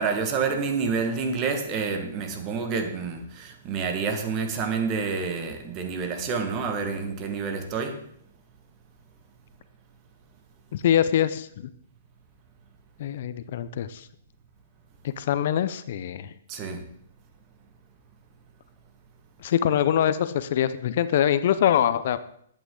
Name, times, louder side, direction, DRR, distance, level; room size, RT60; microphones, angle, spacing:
voice 1, 0.0-8.0 16.5-16.9, right 5 dB, 30° right, 1.5 m, -28 dB
voice 2, 10.7-11.7 13.0-14.1 15.0-16.3 19.4-22.2, left 10 dB, 55° left, 0.6 m, -24 dB
11.0 x 8.7 x 3.8 m
hypercardioid pair, 145°, 0 cm